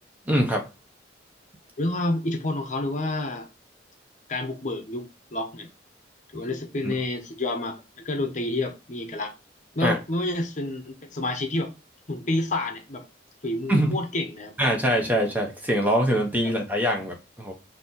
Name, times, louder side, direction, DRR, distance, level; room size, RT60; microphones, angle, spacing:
voice 1, 0.3-0.7 6.8-6.9 9.8-10.0 13.7-14.0 14.6-17.5, equal, 10° right, 0.7 m, -23 dB
voice 2, 1.8-3.5 4.3-5.7 6.3-9.3 9.7-11.7 12.1-13.0 13.4-14.5 16.4-16.5, left 2 dB, 40° left, 0.8 m, -29 dB
4.0 x 2.8 x 4.0 m
head